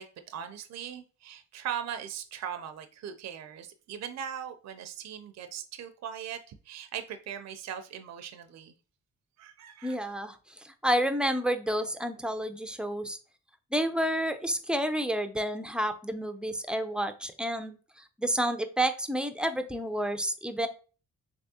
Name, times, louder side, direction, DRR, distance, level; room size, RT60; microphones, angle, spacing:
voice 1, 0.0-8.7 9.4-10.0, right 9 dB, 55° right, 0.5 m, -39 dB
voice 2, 9.8-13.2 13.7-17.8 18.2-20.7, right 1 dB, 5° right, 0.4 m, -30 dB
3.5 x 3.2 x 2.7 m
cardioid pair, 85°, 32 cm